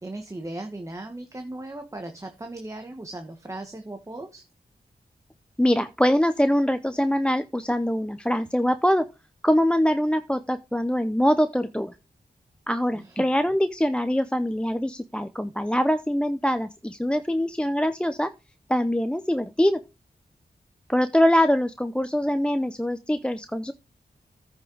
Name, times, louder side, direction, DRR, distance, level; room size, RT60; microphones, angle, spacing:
voice 1, 0.0-4.4 12.9-13.2, right 2 dB, 20° right, 5 dB, 1.3 m, -37 dB
voice 2, 5.6-9.1 9.4-11.9 12.7-18.3 18.7-19.8 20.9-23.7, equal, 5° left, 10 dB, 0.6 m, -23 dB
14.5 x 5.9 x 3.9 m, 0.28 s
wide cardioid pair, 130°, 16 cm